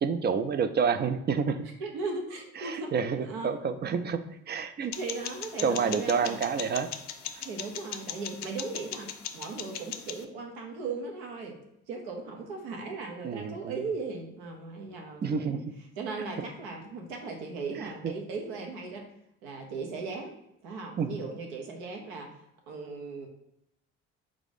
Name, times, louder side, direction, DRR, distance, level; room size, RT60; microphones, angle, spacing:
voice 1, 0.0-1.7 2.6-4.9 5.6-6.9 13.2-13.8 15.2-15.6 17.8-18.1 21.0-21.2, right 6 dB, 30° right, 10 dB, 0.4 m, -29 dB
voice 2, 1.8-3.5 5.0-6.4 7.4-11.6 11.9-15.6 16.0-19.1 19.4-20.4 20.6-22.3 22.7-23.3, right 4 dB, 75° right, 2 dB, 0.9 m, -37 dB
sound 1, 4.9-10.2, left 9 dB, 50° left, 0.5 m, -39 dB
4.6 x 2.5 x 4.0 m, 0.82 s
hypercardioid pair, 50°, 34 cm